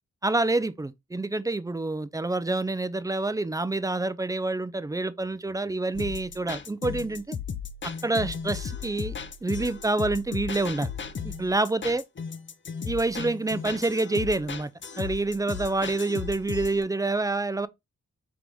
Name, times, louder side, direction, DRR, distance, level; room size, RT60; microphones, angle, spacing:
voice 1, 0.2-7.4 8.0-9.2 9.4-10.9 11.2-12.0 12.8-14.7 15.0-17.7, right 2 dB, 10° right, 0.4 m, -27 dB
sound 1, 5.9-16.8, left 6 dB, 40° left, 0.7 m, -36 dB
4.6 x 2.5 x 3.5 m
cardioid pair, 50°, 30 cm